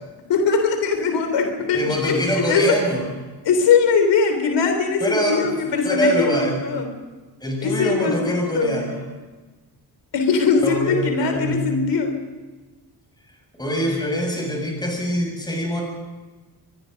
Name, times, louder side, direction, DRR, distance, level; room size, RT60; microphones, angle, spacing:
voice 1, 0.3-2.8 3.4-6.9 7.6-8.8 10.1-12.2, left 5 dB, 80° left, 5 dB, 3.6 m, -21 dB
voice 2, 1.7-3.0 5.0-5.5 5.8-6.6 7.4-9.0 10.6-11.7 13.6-15.8, equal, 10° left, 1 dB, 6.6 m, -24 dB
24.5 x 22.5 x 5.4 m, 1.3 s
wide cardioid pair, 155°, 41 cm